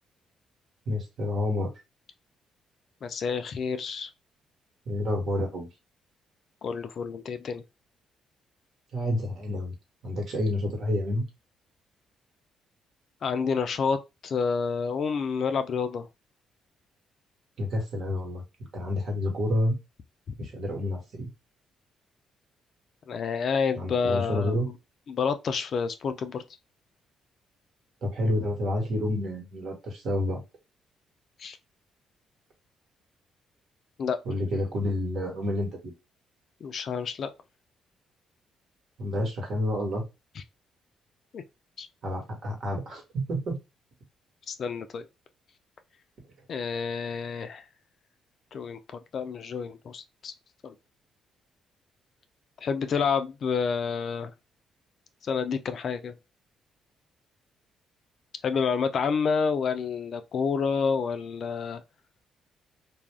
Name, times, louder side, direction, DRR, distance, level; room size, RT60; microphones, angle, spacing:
voice 1, 0.9-1.7 4.9-5.7 8.9-9.7 10.0-11.2 17.6-18.4 18.7-19.7 20.4-21.3 23.7-24.7 28.0-30.4 34.2-35.9 39.0-40.0 42.0-43.6, left 1 dB, 60° right, 1.2 m, -29 dB
voice 2, 3.0-4.1 6.6-7.6 13.2-16.1 23.1-24.6 25.1-26.4 31.4-31.6 34.0-34.2 36.6-37.3 41.3-41.4 41.8-41.9 44.5-45.1 46.5-47.6 48.5-48.8 49.1-50.3 50.6-50.7 52.6-54.3 55.2-56.1 58.4-61.8, left 5 dB, 55° left, 0.4 m, -29 dB
2.4 x 2.0 x 3.2 m
cardioid pair, 90°, 0 cm